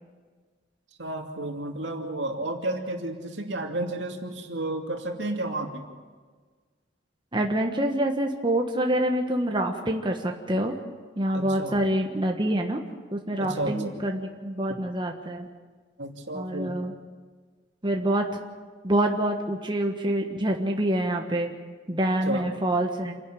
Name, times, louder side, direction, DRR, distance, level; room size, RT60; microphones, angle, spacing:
voice 1, 1.0-5.9 11.3-11.8 13.4-13.8 16.0-16.8 22.3-22.4, right 2 dB, 75° right, 3 dB, 2.6 m, -32 dB
voice 2, 7.3-10.7 11.2-12.8 13.1-15.5 16.3-16.9 17.8-18.3 18.8-21.5 21.9-23.2, right 1 dB, 25° right, 2 dB, 1.4 m, -26 dB
27.5 x 11.0 x 9.2 m, 1.5 s
head